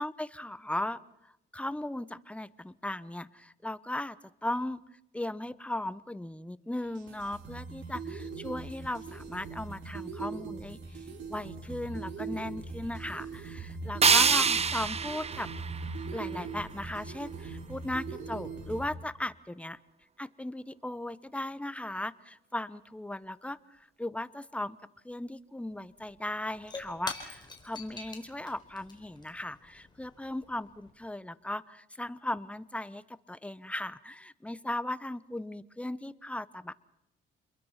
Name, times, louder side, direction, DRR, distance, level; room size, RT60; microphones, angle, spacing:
voice 1, 0.0-4.2 4.4-4.8 5.1-15.5 16.1-19.8 20.2-24.8 25.0-36.7, left 1 dB, 5° left, 16 dB, 0.9 m, -37 dB
sound 1, 6.8-18.8, right 4 dB, 75° right, 5.8 m, -41 dB
sound 2, 14.0-17.0, right 5 dB, 30° right, 0.8 m, -27 dB
Shatter / Crushing, 25.7-25.8 26.0-30.9, left 3 dB, 20° left, 4.5 m, -45 dB
28.0 x 22.0 x 5.8 m, 0.84 s
cardioid pair, 90°, 20 cm